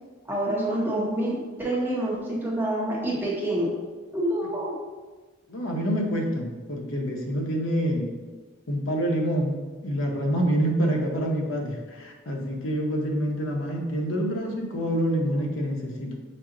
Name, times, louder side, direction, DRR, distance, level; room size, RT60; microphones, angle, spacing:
voice 1, 0.3-3.7 4.1-4.8, right 1 dB, 10° right, -4 dB, 0.7 m, -27 dB
voice 2, 5.5-8.1 8.7-16.2, equal, 70° left, 0 dB, 0.7 m, -27 dB
6.0 x 2.0 x 3.7 m, 1.3 s
head